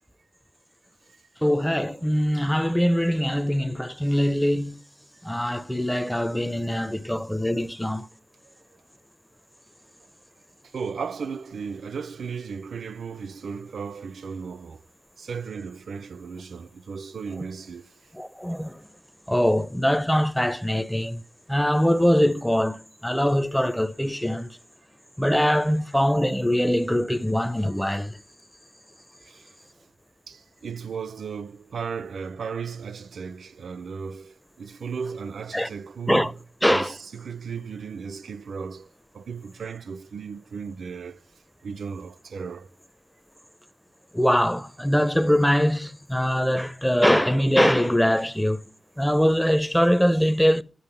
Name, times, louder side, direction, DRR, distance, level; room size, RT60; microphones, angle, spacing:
voice 1, 1.4-4.8 5.2-8.1 18.2-18.8 19.3-21.2 21.5-24.5 25.2-28.2 35.5-35.7 36.1-36.3 36.6-36.9 44.1-48.6 49.0-50.6, equal, 5° left, 0.5 m, -22 dB
voice 2, 6.8-7.1 8.5-8.6 10.6-14.8 15.2-17.9 29.2-29.5 30.3-36.4 36.7-41.2 41.6-42.7, right 6 dB, 75° right, 0.5 m, -36 dB
11.0 x 7.5 x 5.5 m
wide cardioid pair, 125°, 0 cm